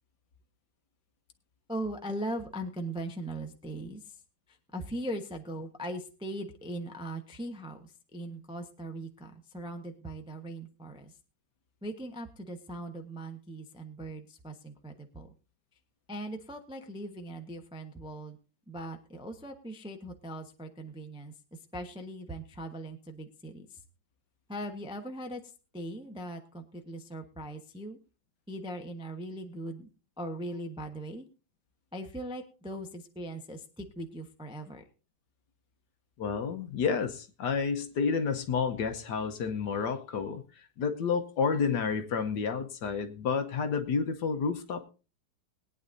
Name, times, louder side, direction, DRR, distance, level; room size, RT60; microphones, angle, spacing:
voice 1, 1.7-4.1 4.5-11.1 11.8-15.3 16.1-18.4 18.7-21.3 21.7-23.8 24.5-25.4 25.7-28.0 28.5-29.9 30.2-31.3 31.9-34.8, right 1 dB, 5° right, 4 dB, 0.6 m, -40 dB
voice 2, 36.2-40.4 40.8-44.9, left 5 dB, 60° left, 6 dB, 1.5 m, -30 dB
21.5 x 9.5 x 2.6 m, 0.33 s
omnidirectional pair, 2.2 m